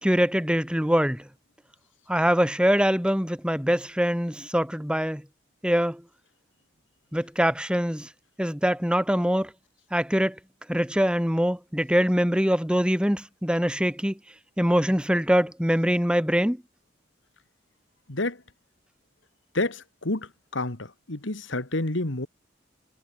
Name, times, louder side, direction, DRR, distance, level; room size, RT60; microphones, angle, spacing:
voice 1, 0.0-1.3 2.1-5.2 5.6-6.0 7.1-8.1 8.4-9.5 9.9-10.4 10.7-14.2 14.6-16.6, equal, 5° right, 2.1 m, -23 dB
voice 2, 18.1-18.4 19.5-22.3, left 2 dB, 75° left, 2.3 m, -29 dB
head